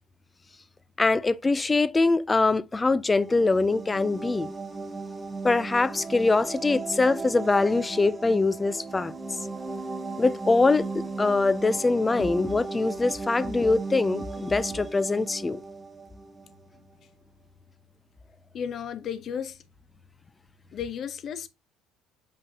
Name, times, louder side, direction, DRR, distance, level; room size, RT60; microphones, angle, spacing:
voice 1, 1.0-4.5 5.4-9.1 10.2-10.9 11.2-15.6, left 3 dB, 15° left, 0.3 m, -23 dB
sound 1, 3.0-16.6, right 3 dB, 10° right, 1.0 m, -36 dB
voice 2, 18.5-19.6 20.7-21.5, left 8 dB, 35° left, 0.7 m, -33 dB
6.9 x 5.4 x 2.7 m
cardioid pair, 160°, 0 cm